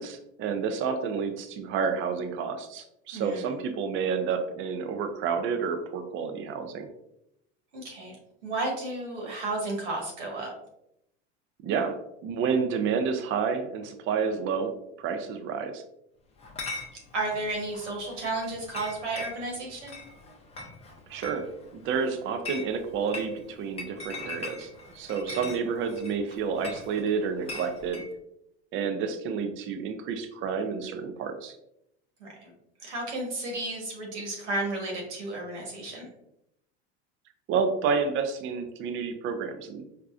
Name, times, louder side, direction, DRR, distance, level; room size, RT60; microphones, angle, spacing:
voice 1, 0.0-6.9 11.6-12.0 12.2-15.8 21.1-21.5 21.7-28.0 28.7-31.6 37.5-39.8, right 6 dB, 35° right, 7 dB, 0.5 m, -30 dB
voice 2, 3.1-3.5 7.7-8.2 8.4-10.5 17.1-20.0 25.3-25.5 32.2-32.5 32.8-36.1, right 2 dB, 85° right, -1 dB, 1.5 m, -33 dB
Chatter / Chink clink, 16.4-28.1, left 3 dB, 20° left, 0.5 m, -42 dB
4.8 x 2.2 x 2.4 m, 0.80 s
hypercardioid pair, 105°, 35 cm